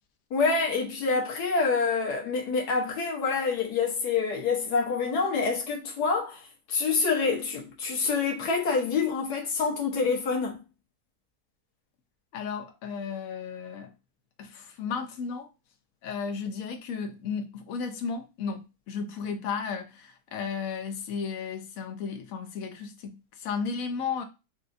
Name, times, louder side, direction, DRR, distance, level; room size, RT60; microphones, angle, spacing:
voice 1, 0.3-10.6, left 4 dB, 85° left, 1.6 m, -27 dB
voice 2, 12.3-13.9 14.4-15.5 16.0-24.2, left 5 dB, 65° left, 1.1 m, -34 dB
5.5 x 2.4 x 2.6 m
omnidirectional pair, 1.7 m